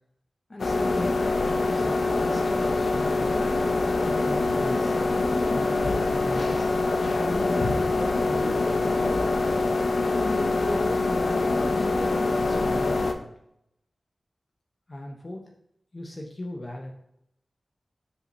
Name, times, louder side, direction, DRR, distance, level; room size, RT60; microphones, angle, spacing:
voice 1, 0.5-3.3 4.0-5.0 5.5-6.7 7.2-9.1 10.1-13.3 14.9-15.5 15.9-16.9, left 1 dB, 40° left, 1 dB, 1.1 m, -37 dB
sound 1, 0.6-13.1, left 3 dB, 80° left, 0.9 m, -24 dB
6.4 x 5.2 x 5.6 m, 0.76 s
wide cardioid pair, 80°, 0 cm